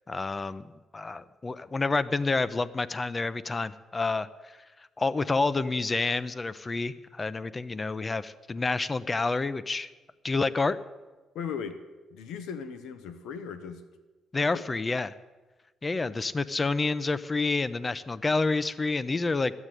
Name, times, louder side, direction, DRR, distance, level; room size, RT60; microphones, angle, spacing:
voice 1, 0.1-4.6 5.0-9.9 10.2-10.8 14.3-15.1 15.8-19.5, left 3 dB, 25° left, 15 dB, 0.6 m, -28 dB
voice 2, 11.3-11.8 12.1-13.8 14.5-14.6 16.0-16.1, left 7 dB, 90° left, 9 dB, 1.0 m, -37 dB
13.0 x 8.2 x 9.1 m, 1.2 s
cardioid pair, 90°, 0 cm